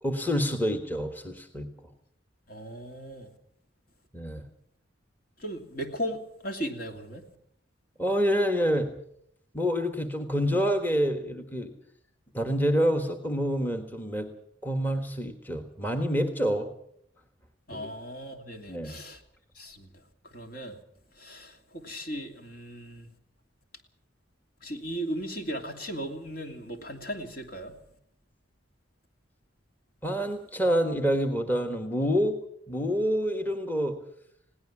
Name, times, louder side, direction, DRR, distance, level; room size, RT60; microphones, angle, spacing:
voice 1, 0.0-1.7 4.1-4.4 8.0-8.9 9.5-11.7 12.3-14.3 14.6-16.7 17.7-17.9 18.7-19.0 30.0-32.4 32.7-34.0, equal, 10° left, 6 dB, 1.5 m, -27 dB
voice 2, 2.5-3.3 5.4-7.2 17.7-19.2 19.5-19.9 20.2-20.7 21.2-23.1 24.6-27.8, equal, 50° left, 5 dB, 2.7 m, -37 dB
21.0 x 17.5 x 7.3 m, 0.68 s
head